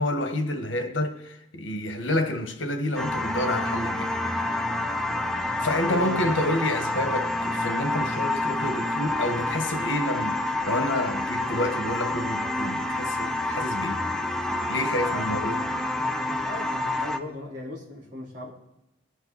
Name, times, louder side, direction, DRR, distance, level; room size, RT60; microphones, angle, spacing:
voice 1, 0.0-4.1 5.4-14.0 14.6-15.6, left 1 dB, 85° left, 1.5 m, -29 dB
sound 1, 3.0-17.2, left 2 dB, 5° left, 0.6 m, -28 dB
voice 2, 5.6-6.3 15.1-15.5 16.3-18.5, left 2 dB, 40° right, 4.1 m, -37 dB
22.0 x 8.1 x 4.2 m
head